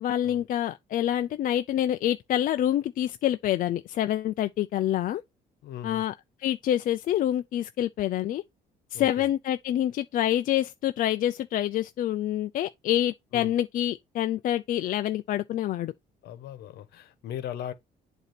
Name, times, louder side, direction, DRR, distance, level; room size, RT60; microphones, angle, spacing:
voice 1, 0.0-5.2 5.8-6.1 6.4-8.4 8.9-15.9, left 12 dB, 55° left, 0.4 m, -27 dB
voice 2, 5.6-6.0 8.9-9.3 13.3-13.5 16.2-17.7, left 10 dB, 75° left, 1.1 m, -38 dB
8.0 x 2.8 x 5.9 m
cardioid pair, 110°, 17 cm